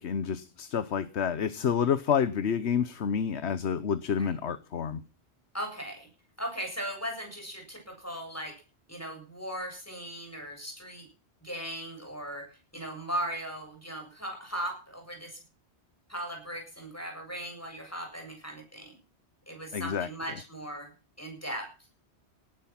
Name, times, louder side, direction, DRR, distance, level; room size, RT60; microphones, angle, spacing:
voice 1, 0.0-5.0 19.7-20.1, left 7 dB, 80° left, 15 dB, 1.2 m, -29 dB
voice 2, 5.5-6.1 6.4-8.5 8.9-11.1 11.4-15.4 16.1-18.9 19.5-21.7, equal, 15° left, 2 dB, 7.9 m, -38 dB
18.0 x 12.0 x 5.9 m, 0.36 s
omnidirectional pair, 1.1 m